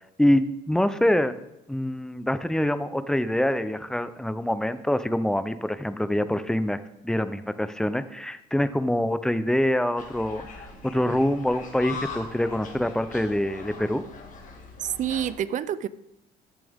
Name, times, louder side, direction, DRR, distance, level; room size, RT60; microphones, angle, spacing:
voice 1, 0.2-1.4 1.7-10.5 10.8-14.0, left 1 dB, 5° left, 0.5 m, -25 dB
sound 1, 10.0-15.3, left 4 dB, 50° left, 1.9 m, -41 dB
voice 2, 14.8-15.9, right 10 dB, 50° right, 0.5 m, -28 dB
14.0 x 7.3 x 3.6 m
cardioid pair, 110°, 17 cm